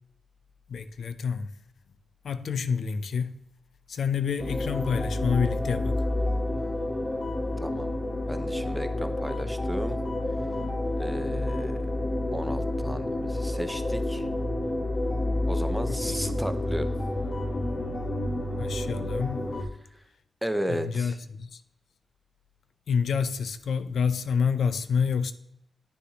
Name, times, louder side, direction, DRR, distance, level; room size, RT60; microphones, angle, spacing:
voice 1, 0.7-1.5 2.2-3.4 3.9-6.0 15.9-16.5 18.6-19.5 20.7-21.6 22.9-25.3, left 6 dB, 85° left, 0.4 m, -28 dB
sound 1, 4.4-19.6, left 1 dB, 40° left, 1.1 m, -29 dB
voice 2, 7.6-8.0 8.3-10.0 11.0-11.9 12.3-14.3 15.5-16.9 20.4-21.2, equal, 5° right, 0.6 m, -34 dB
9.4 x 6.6 x 2.8 m
wide cardioid pair, 115°, 0 cm